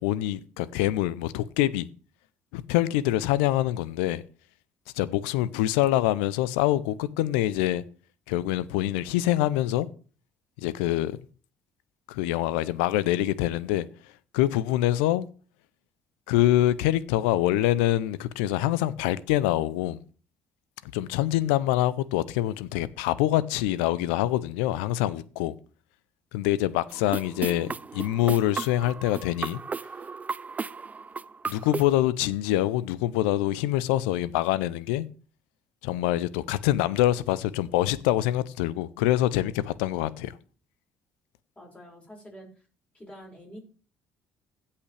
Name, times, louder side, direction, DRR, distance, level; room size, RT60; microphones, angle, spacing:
voice 1, 0.0-1.9 2.5-4.2 5.0-7.8 8.3-9.9 10.6-11.2 12.1-13.9 14.3-15.3 16.3-20.0 20.9-25.5 26.3-29.6 31.5-35.1 35.8-40.4, left 14 dB, 85° left, 0.5 m, -25 dB
sound 1, 26.9-31.9, right 4 dB, 25° right, 0.4 m, -35 dB
voice 2, 41.6-42.5 42.9-43.6, equal, 20° left, 5.5 m, -46 dB
16.0 x 5.7 x 3.3 m
hypercardioid pair, 65°, 6 cm